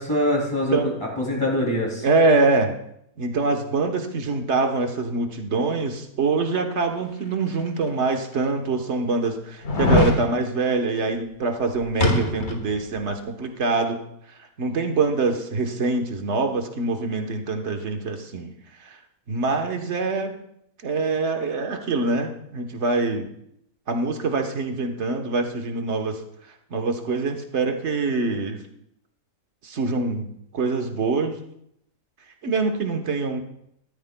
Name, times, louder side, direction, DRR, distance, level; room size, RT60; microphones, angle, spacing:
voice 1, 0.0-2.1, left 1 dB, 20° left, -2 dB, 2.9 m, -24 dB
voice 2, 2.0-2.7 3.2-14.0 14.6-18.5 18.8-19.0 19.3-20.4 20.8-23.3 23.9-26.2 26.7-28.6 29.6-30.3 30.5-31.4 32.4-33.4, right 3 dB, 50° right, 5 dB, 1.3 m, -24 dB
sound 1, 7.7-7.8 8.4-8.5 9.6-10.2 12.0-12.7 13.0-13.1, left 2 dB, 50° left, 1.5 m, -21 dB
13.5 x 13.5 x 2.2 m, 0.74 s
omnidirectional pair, 1.6 m